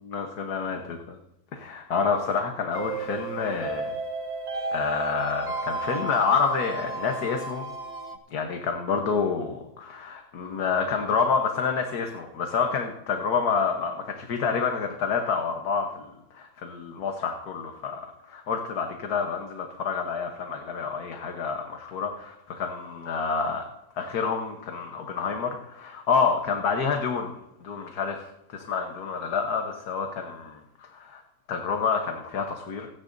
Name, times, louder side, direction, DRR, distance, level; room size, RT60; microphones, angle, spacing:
voice 1, 0.1-1.2 1.5-3.9 4.7-7.7 8.3-16.1 16.3-18.0 18.3-23.7 24.0-31.2 31.5-32.9, left 5 dB, 80° left, 3 dB, 1.7 m, -28 dB
sound 1, 2.7-8.2, right 3 dB, 45° right, 1.7 m, -33 dB
27.0 x 10.5 x 2.7 m, 0.85 s
omnidirectional pair, 1.6 m